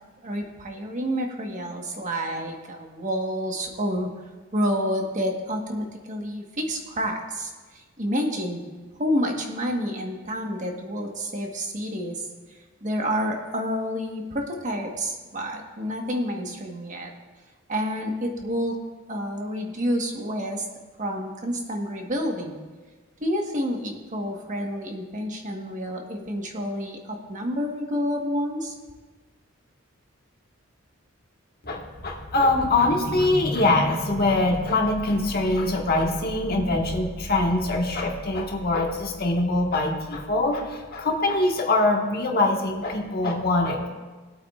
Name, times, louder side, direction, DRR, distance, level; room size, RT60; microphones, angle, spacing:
voice 1, 0.2-4.1 4.5-8.6 9.0-17.1 17.7-18.8 19.1-20.6 21.0-22.5 23.2-28.7, equal, 35° right, 2 dB, 1.4 m, -29 dB
voice 2, 31.6-43.9, left 2 dB, 45° left, 1 dB, 1.5 m, -23 dB
20.5 x 8.3 x 2.5 m, 1.3 s
head